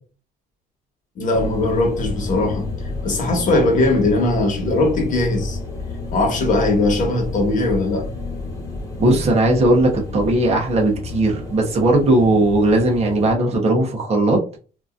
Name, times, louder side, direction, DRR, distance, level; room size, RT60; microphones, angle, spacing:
voice 1, 1.2-2.7 3.0-5.6 6.1-8.1, left 2 dB, 50° left, 1.2 m, -19 dB
sound 1, 1.3-13.3, left 2 dB, 20° left, 1.1 m, -31 dB
voice 2, 9.0-14.4, right 2 dB, 40° right, 0.9 m, -17 dB
2.9 x 2.6 x 2.4 m
cardioid pair, 110°, 17 cm